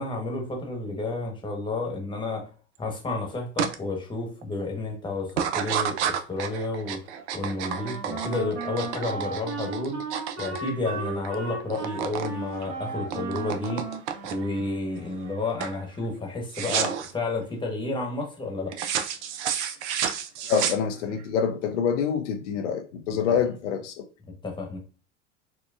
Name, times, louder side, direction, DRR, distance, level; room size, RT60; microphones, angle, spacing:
voice 1, 0.0-2.5 2.8-10.0 10.4-13.8 14.3-18.7 23.3-23.4 24.4-24.8, left 2 dB, 15° left, 1.1 m, -31 dB
sound 1, 3.6-3.7 4.2-4.6 5.3-11.3 11.6-12.3 12.6-14.6 15.1-15.3 15.6-15.8 16.5-17.1 18.7-21.2, right 8 dB, 70° right, 0.6 m, -30 dB
Wind instrument woodwind instrument, 7.6-15.0, right 4 dB, 45° right, 1.5 m, -36 dB
voice 2, 20.5-24.0, left 7 dB, 75° left, 0.5 m, -26 dB
4.5 x 2.2 x 2.4 m
hypercardioid pair, 85°, 36 cm